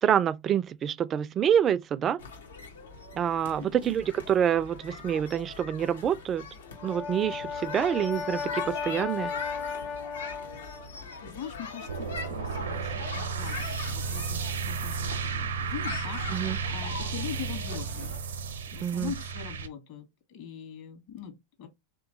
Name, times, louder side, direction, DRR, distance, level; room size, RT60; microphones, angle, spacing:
voice 1, 0.0-2.2 3.2-6.5 6.8-9.3 16.3-16.6 18.8-19.1, right 9 dB, 30° right, 0.3 m, -27 dB
sound 1, 2.2-18.2, left 5 dB, 80° left, 1.0 m, -42 dB
Brass instrument, 6.6-10.9, left 6 dB, 35° left, 0.5 m, -35 dB
voice 2, 11.2-18.1 18.7-21.7, left 8 dB, 55° left, 1.5 m, -42 dB
sound 2, 11.9-19.7, right 5 dB, 80° right, 0.7 m, -33 dB
3.4 x 3.0 x 3.9 m
hypercardioid pair, 95°, 0 cm